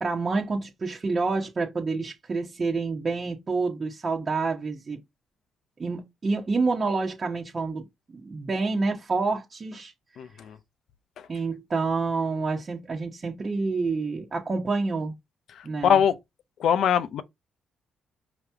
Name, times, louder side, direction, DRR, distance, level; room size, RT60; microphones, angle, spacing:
voice 1, 0.0-5.0 5.8-9.9 11.3-15.2 15.6-16.0, right 3 dB, 35° right, 1.1 m, -28 dB
voice 2, 10.2-10.6 15.6-16.2 16.6-17.2, left 8 dB, 70° left, 0.6 m, -22 dB
5.1 x 2.9 x 3.5 m
cardioid pair, 90°, 0 cm